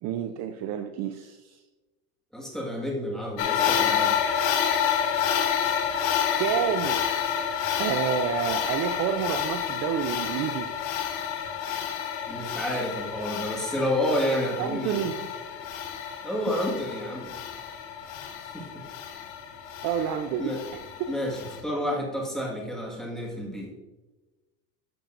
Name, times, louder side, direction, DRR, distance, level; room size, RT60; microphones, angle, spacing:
voice 1, 0.0-1.6 6.4-7.0 7.8-10.7 14.6-15.2 19.8-20.6 21.0-21.1, right 9 dB, 45° right, 7 dB, 0.4 m, -29 dB
voice 2, 2.3-4.1 12.3-15.0 16.2-17.3 18.4-18.8 20.4-20.6 21.1-23.7, equal, ahead, -3 dB, 1.6 m, -30 dB
sound 1, 3.4-21.6, left 8 dB, 65° left, 1.2 m, -29 dB
12.0 x 6.7 x 2.5 m, 1.1 s
cardioid pair, 160°, 39 cm